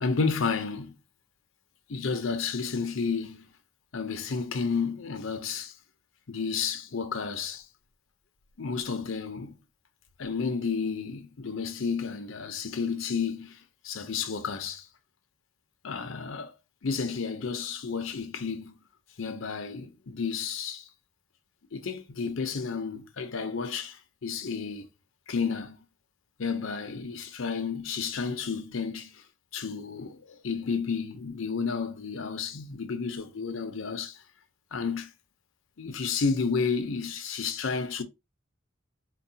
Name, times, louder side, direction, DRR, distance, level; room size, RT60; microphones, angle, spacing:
voice 1, 0.0-0.9 1.9-3.4 3.9-5.7 6.3-7.6 8.6-9.5 10.2-13.6 13.8-14.9 15.8-16.5 16.8-18.8 19.2-20.8 21.7-24.0 24.2-24.9 25.3-25.8 26.4-29.1 29.5-34.2 34.7-35.1 35.8-38.0, left 5 dB, 75° left, 0.7 m, -31 dB
4.5 x 2.3 x 2.7 m
head